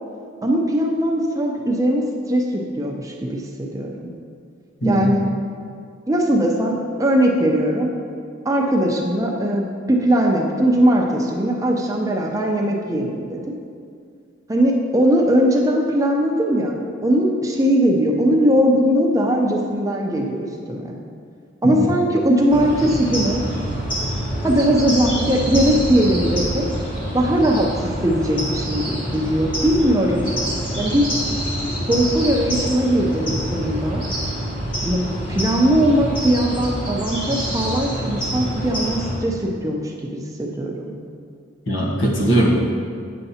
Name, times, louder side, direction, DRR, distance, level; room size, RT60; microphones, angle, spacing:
voice 1, 0.4-2.0 2.3-2.5 2.7-3.9 4.9-5.3 6.1-7.9 8.4-13.4 14.5-20.9 21.6-23.4 24.4-26.6 27.1-30.3 30.8-31.1 31.9-34.0 34.8-35.0 35.3-40.9, equal, 15° right, 0 dB, 0.5 m, -19 dB
voice 2, 4.8-5.1 21.6-21.9 41.7-42.5, right 1 dB, 75° left, -3 dB, 1.4 m, -19 dB
sound 1, 22.5-39.2, equal, 25° left, 1.6 m, -26 dB
9.2 x 6.7 x 2.8 m, 2.3 s
head